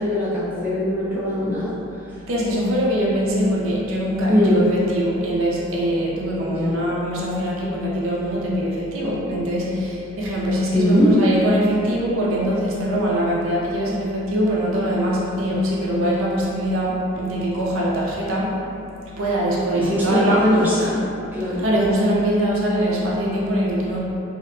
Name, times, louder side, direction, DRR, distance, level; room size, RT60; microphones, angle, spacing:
voice 1, 0.0-1.7 4.3-4.6 6.5-6.8 10.7-11.2 19.7-21.0 21.3-21.6, left 1 dB, 10° right, -11 dB, 0.4 m, -20 dB
voice 2, 2.3-18.6 19.0-21.0 21.5-24.0, equal, 70° right, -5 dB, 0.5 m, -22 dB
2.6 x 2.1 x 2.4 m, 2.7 s
head